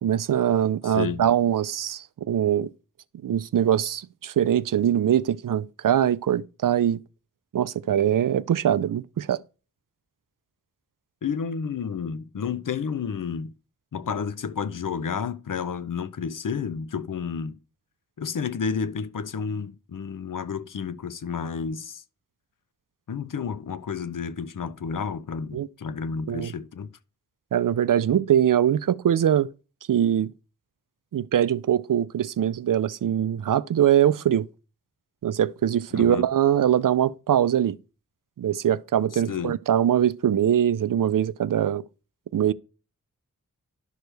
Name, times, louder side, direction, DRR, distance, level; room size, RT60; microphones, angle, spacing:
voice 1, 0.0-2.7 3.2-7.0 7.5-9.4 25.5-25.7 26.3-26.5 27.5-29.5 29.9-30.3 31.1-34.5 35.2-37.8 38.4-41.8 42.3-42.5, right 10 dB, 80° right, 0.5 m, -22 dB
voice 2, 0.8-1.2 11.2-13.5 13.9-17.6 18.2-22.0 23.1-26.9 35.9-36.3 39.1-39.6, left 6 dB, 75° left, 0.7 m, -31 dB
11.5 x 6.3 x 3.3 m
wide cardioid pair, 65°, 32 cm